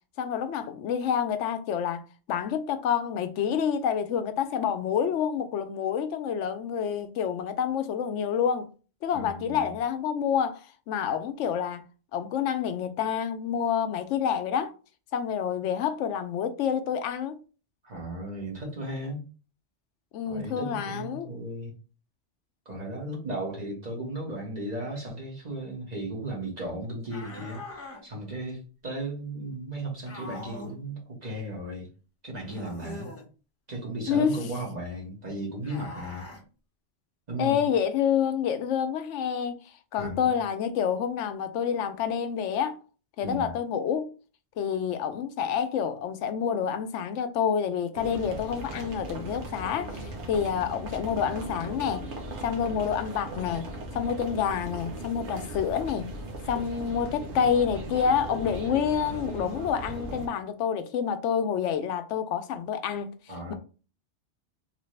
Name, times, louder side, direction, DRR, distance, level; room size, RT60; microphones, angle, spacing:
voice 1, 0.2-8.7 9.0-11.8 12.1-14.7 15.1-17.4 20.1-21.3 34.1-34.4 37.4-39.6 39.9-42.8 43.2-44.1 44.6-52.0 52.4-53.7 53.9-56.1 56.5-63.1, left 8 dB, 90° left, 0.9 m, -28 dB
voice 2, 9.1-9.7 17.8-19.2 20.2-21.7 22.6-31.9 32.2-33.1 33.7-36.3 37.3-37.7 40.0-40.3 43.2-43.5 63.3-63.5, right 1 dB, 35° right, 1.6 m, -36 dB
sound 1, 27.1-28.0 30.0-30.8 32.4-33.3 35.6-36.4, left 2 dB, 15° left, 0.8 m, -42 dB
sound 2, 47.9-60.3, right 1 dB, 75° right, 1.2 m, -38 dB
3.3 x 2.9 x 3.2 m
omnidirectional pair, 1.2 m